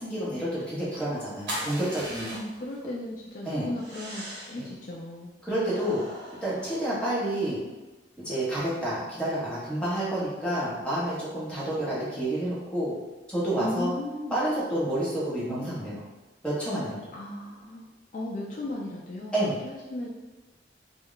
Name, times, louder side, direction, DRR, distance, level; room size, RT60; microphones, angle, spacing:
voice 1, 0.0-2.3 3.5-3.7 4.6-4.7 5.4-7.6 8.2-13.0 13.3-13.9 14.3-16.0 16.4-17.1 19.3-19.6, right 1 dB, 5° left, -9 dB, 0.8 m, -29 dB
sound 1, 1.5-2.7 3.8-4.7 5.6-7.3, right 1 dB, 70° right, 0.9 m, -39 dB
voice 2, 2.3-5.3 13.6-14.4 17.1-17.8 18.1-19.4 19.6-20.1, left 1 dB, 45° left, -3 dB, 0.3 m, -36 dB
2.2 x 2.0 x 3.8 m, 1.1 s
head